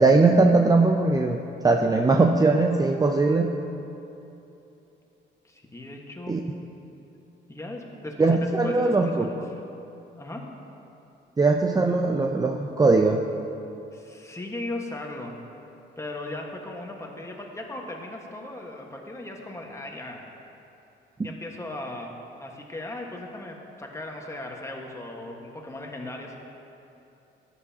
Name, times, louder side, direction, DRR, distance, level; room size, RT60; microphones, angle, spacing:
voice 1, 0.0-1.4 1.6-3.5 6.3-6.4 8.2-9.3 11.4-13.2 21.2-21.3, right 3 dB, 20° right, 3 dB, 0.5 m, -20 dB
voice 2, 5.4-6.3 7.5-9.6 10.2-10.4 13.9-15.3 16.0-20.2 21.2-22.1 22.4-26.4, left 2 dB, 15° left, 0 dB, 1.4 m, -37 dB
14.5 x 9.7 x 2.8 m, 2.9 s
cardioid pair, 90°, 20 cm